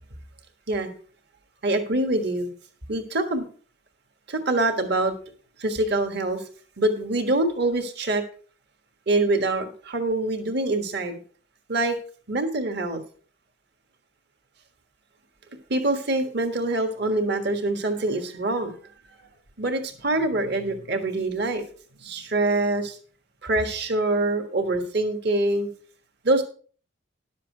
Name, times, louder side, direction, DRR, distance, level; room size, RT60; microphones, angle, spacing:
voice 1, 1.6-2.5 2.9-3.4 4.3-5.1 5.6-6.4 6.8-8.2 9.1-11.2 11.7-11.9 12.3-13.0 15.7-18.7 19.6-21.6 22.0-23.0 23.4-25.7 26.2-26.4, right 2 dB, 55° right, 6 dB, 1.5 m, -24 dB
11.5 x 7.4 x 4.5 m, 0.42 s
head